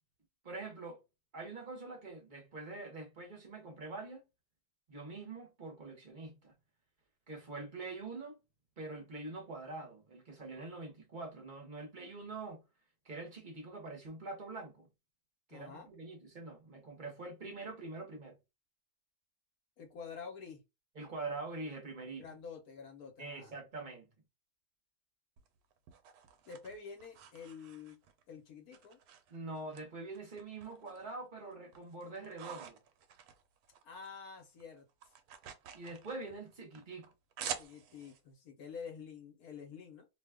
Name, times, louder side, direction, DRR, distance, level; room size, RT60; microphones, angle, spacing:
voice 1, 0.4-1.0 1.3-4.2 4.9-6.5 7.3-8.4 8.8-12.6 13.0-14.9 15.5-18.4 20.9-22.2 23.2-24.1 29.3-32.8 35.7-37.1, right 3 dB, 35° right, 0.9 m, -44 dB
voice 2, 15.5-15.9 19.8-20.6 22.2-23.5 26.5-28.0 28.3-29.0 33.8-34.9 37.4-40.1, left 6 dB, 75° left, 1.3 m, -48 dB
sound 1, 25.4-28.2 28.7-29.8 30.1-31.2 31.5-34.1 34.4-38.2, right 8 dB, 80° right, 1.1 m, -48 dB
2.8 x 2.3 x 3.4 m
omnidirectional pair, 1.6 m